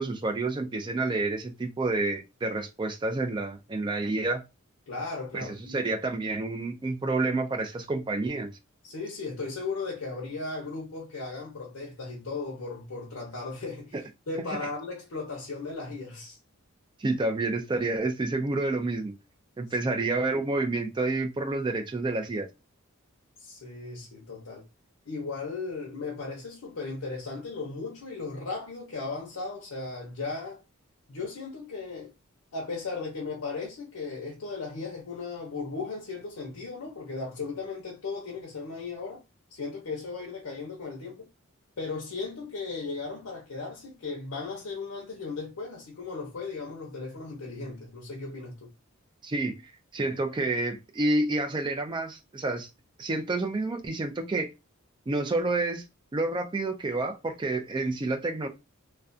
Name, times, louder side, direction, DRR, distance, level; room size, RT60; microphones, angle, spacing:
voice 1, 0.0-4.4 5.3-8.5 13.9-14.0 17.0-19.1 19.6-22.5 49.2-49.6 49.9-52.7 53.0-54.5 55.1-55.8 56.1-58.5, right 2 dB, 20° right, 0.3 m, -29 dB
voice 2, 4.9-5.9 8.8-16.4 19.8-20.1 23.4-24.6 25.1-30.6 31.1-32.1 32.5-39.2 39.5-41.3 41.8-48.7, left 4 dB, 80° left, 0.6 m, -36 dB
2.3 x 2.2 x 2.5 m
head